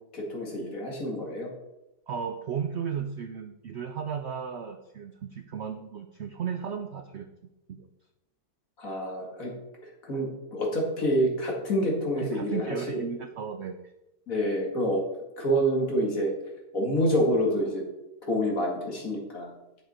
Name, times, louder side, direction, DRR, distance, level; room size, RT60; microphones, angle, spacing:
voice 1, 0.1-1.5 8.8-9.5 10.0-12.6 12.9-13.0 14.3-15.0 15.4-16.3 16.7-17.8 18.2-19.5, equal, 55° left, -1 dB, 2.4 m, -27 dB
voice 2, 2.1-7.3 7.7-7.9 12.2-13.8, right 7 dB, 65° right, 7 dB, 0.7 m, -35 dB
9.1 x 7.2 x 4.3 m, 0.95 s
omnidirectional pair, 1.7 m